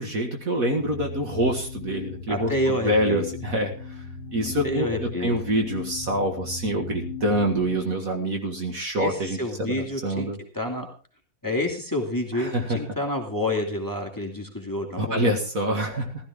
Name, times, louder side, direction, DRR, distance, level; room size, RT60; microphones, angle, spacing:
voice 1, 0.0-4.0 4.3-10.4 12.3-12.8 15.0-16.3, right 1 dB, 50° right, 3 dB, 2.1 m, -26 dB
sound 1, 0.8-7.8, left 3 dB, 30° left, 3.0 m, -37 dB
voice 2, 2.3-3.3 4.6-5.4 9.0-10.3 10.5-10.9 11.4-15.3 15.9-16.0, left 1 dB, 10° left, 1 dB, 2.3 m, -28 dB
16.0 x 13.0 x 3.6 m, 0.38 s
omnidirectional pair, 2.0 m